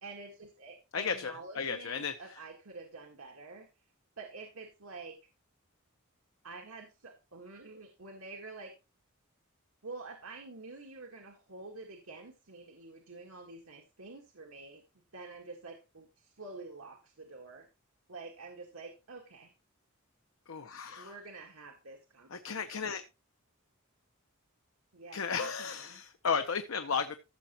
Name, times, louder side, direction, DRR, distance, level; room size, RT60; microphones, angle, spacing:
voice 1, 0.0-3.7 4.2-5.2 6.4-8.7 9.8-14.8 15.1-17.7 18.1-19.5 21.0-23.0 24.9-26.0, right 3 dB, 85° right, 1.7 m, -48 dB
voice 2, 0.9-2.1 20.5-21.1 22.3-23.0 25.1-27.2, left 6 dB, 70° left, 0.8 m, -34 dB
14.5 x 6.9 x 3.0 m
head